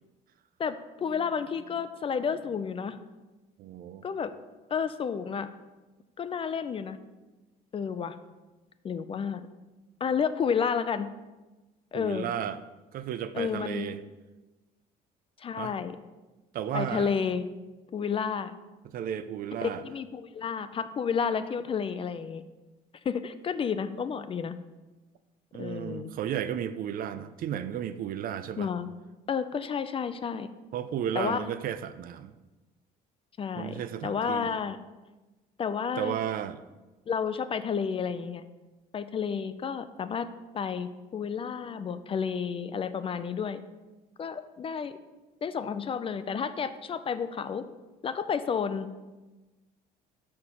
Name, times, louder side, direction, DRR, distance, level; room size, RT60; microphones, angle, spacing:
voice 1, 0.6-3.0 4.0-4.3 4.7-5.5 6.2-7.0 7.7-8.2 8.8-9.5 10.0-11.1 11.9-12.3 13.3-13.9 15.4-16.0 16.7-17.5 17.9-18.5 19.8-22.4 23.0-24.6 25.6-26.1 28.6-28.9 29.3-30.5 31.1-31.4 33.4-34.8 35.6-36.1 37.1-38.5 38.9-40.3 40.5-43.6 44.2-45.0 45.4-47.6 48.0-48.9, left 6 dB, 35° left, 12 dB, 0.4 m, -31 dB
voice 2, 3.6-4.0 11.9-12.6 12.9-14.0 15.6-15.7 16.5-17.1 18.9-19.8 25.5-28.7 30.7-32.3 33.6-34.5 36.0-36.6, right 9 dB, 60° right, 12 dB, 0.5 m, -33 dB
6.2 x 4.3 x 5.5 m, 1.1 s
cardioid pair, 110°, 17 cm